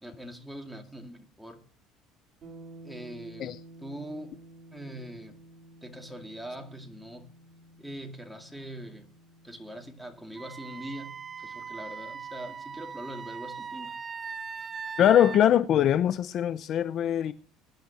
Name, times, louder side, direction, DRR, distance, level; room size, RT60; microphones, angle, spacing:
voice 1, 0.0-1.6 2.8-4.4 4.7-5.4 5.8-7.3 7.8-9.1 9.4-14.0, right 1 dB, 5° right, 2.3 m, -42 dB
sound 1, 2.4-12.2, right 2 dB, 40° right, 3.5 m, -52 dB
Wind instrument woodwind instrument, 10.4-15.4, right 6 dB, 25° right, 0.6 m, -40 dB
voice 2, 15.0-17.3, left 10 dB, 50° left, 0.7 m, -22 dB
23.0 x 10.5 x 2.9 m
cardioid pair, 125°, 0 cm